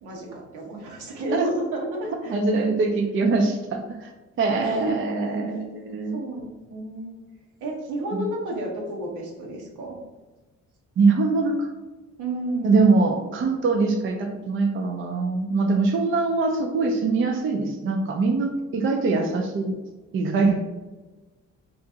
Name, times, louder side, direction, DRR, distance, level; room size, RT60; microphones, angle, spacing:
voice 1, 0.0-2.3 4.5-4.9 6.1-7.1 7.6-10.0 12.2-12.9, right 1 dB, 85° right, -1 dB, 0.9 m, -31 dB
voice 2, 2.3-4.1 4.4-6.2 8.1-8.2 11.0-11.7 12.6-19.8 20.1-20.6, right 3 dB, 40° right, 3 dB, 0.5 m, -23 dB
2.9 x 2.5 x 3.5 m, 1.2 s
cardioid pair, 90°, 30 cm